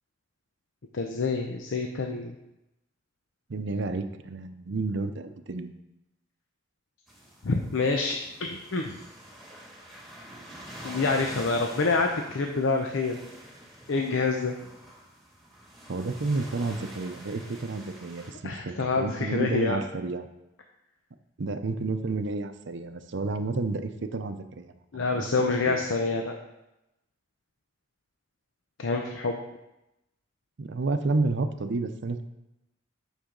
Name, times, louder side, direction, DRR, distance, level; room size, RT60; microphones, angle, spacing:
voice 1, 0.9-2.3 7.4-9.0 10.8-13.2 13.9-14.6 18.4-19.8 24.9-26.4 28.8-29.4, left 3 dB, 85° left, 3 dB, 0.7 m, -27 dB
voice 2, 3.5-5.7 15.9-20.3 21.4-25.3 25.7-25.8 30.6-32.2, right 3 dB, 65° right, 9 dB, 0.6 m, -31 dB
sound 1, 7.1-18.3, right 1 dB, ahead, 2.0 m, -46 dB
9.9 x 6.3 x 3.8 m, 0.92 s
head